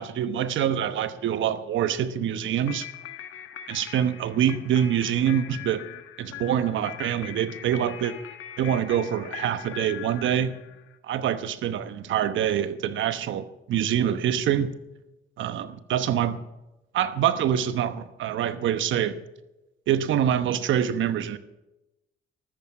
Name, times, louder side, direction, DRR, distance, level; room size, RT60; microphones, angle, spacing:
voice 1, 0.0-2.9 3.7-5.9 6.2-8.1 8.6-10.5 11.0-14.7 15.4-16.4 16.9-19.2 19.9-21.4, right 9 dB, 75° right, 1.0 m, -25 dB
sound 1, 2.6-11.0, left 11 dB, 85° left, 1.3 m, -41 dB
14.0 x 13.5 x 5.8 m
cardioid pair, 90°, 20 cm